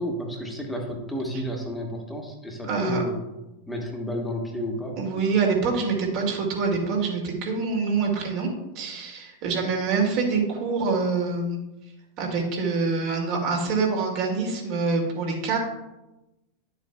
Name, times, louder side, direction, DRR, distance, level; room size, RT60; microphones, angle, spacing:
voice 1, 0.0-3.2 3.7-5.0, equal, 5° left, 1 dB, 1.6 m, -31 dB
voice 2, 2.7-3.0 5.0-8.5 8.8-11.6 12.2-15.6, right 4 dB, 45° right, 0 dB, 2.3 m, -25 dB
11.0 x 7.3 x 2.3 m, 0.98 s
figure-of-eight pair, 90°, 0 cm